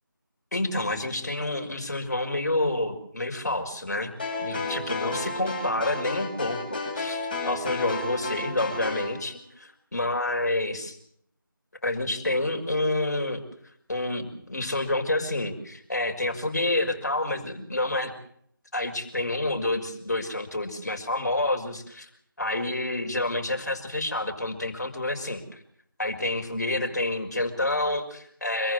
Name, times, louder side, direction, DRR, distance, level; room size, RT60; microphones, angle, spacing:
voice 1, 0.5-11.0 11.8-13.4 13.9-18.1 18.7-22.1 22.4-25.6 26.0-28.7, left 2 dB, 50° left, 4 dB, 5.8 m, -28 dB
sound 1, 4.2-9.1, left 2 dB, 25° left, 6.9 m, -32 dB
27.0 x 15.0 x 8.1 m, 0.68 s
figure-of-eight pair, 170°, 12 cm